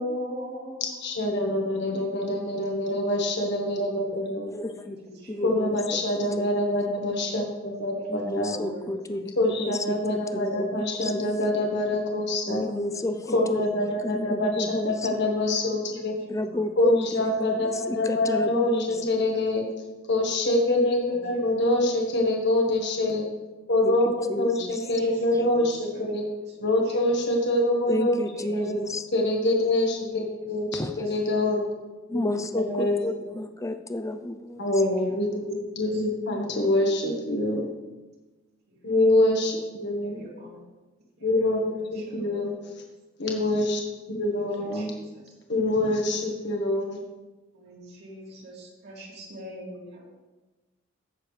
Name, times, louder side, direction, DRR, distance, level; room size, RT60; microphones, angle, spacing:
voice 1, 0.0-1.0 1.7-2.2 4.8-5.5 8.0-8.9 12.9-13.3 16.5-16.7 18.9-19.0 21.1-21.8 24.8-25.2 25.5-26.1 26.9-27.2 28.3-28.9 30.4-30.5 31.0-31.1 32.8-32.9 34.7-35.5 35.8-36.0 36.3-36.7 40.0-40.6 41.2-41.5 41.7-42.7 44.3-44.5 44.7-45.2 47.5-50.2, equal, 60° right, -3 dB, 2.6 m, -42 dB
voice 2, 1.0-4.5 5.4-8.5 9.4-12.6 13.3-16.2 16.8-19.6 20.1-23.2 23.7-26.2 26.6-28.7 29.1-31.7 32.1-32.2 32.5-33.1 34.6-37.7 38.8-40.2 41.2-42.5 43.2-43.8 44.1-44.9 45.5-47.0, left 1 dB, 60° left, 1 dB, 1.4 m, -25 dB
voice 3, 4.5-5.0 5.3-6.0 6.4-6.5 8.1-11.2 12.5-15.0 16.3-19.1 23.8-24.8 27.9-29.0 30.7-31.1 32.1-34.7, left 1 dB, 15° left, 9 dB, 0.5 m, -31 dB
15.5 x 6.7 x 3.3 m, 1.2 s
head